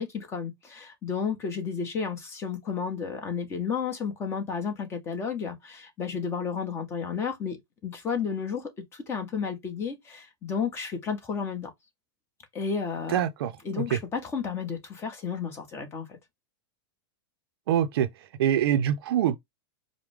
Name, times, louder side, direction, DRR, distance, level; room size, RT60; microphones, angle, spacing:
voice 1, 0.0-7.6 7.8-11.7 12.5-13.2 13.6-16.2, left 6 dB, 20° left, 1.2 m, -32 dB
voice 2, 13.1-13.8 17.7-18.1 18.4-19.4, right 10 dB, 65° right, 0.6 m, -25 dB
4.8 x 2.2 x 3.5 m
supercardioid pair, 150°, 13 cm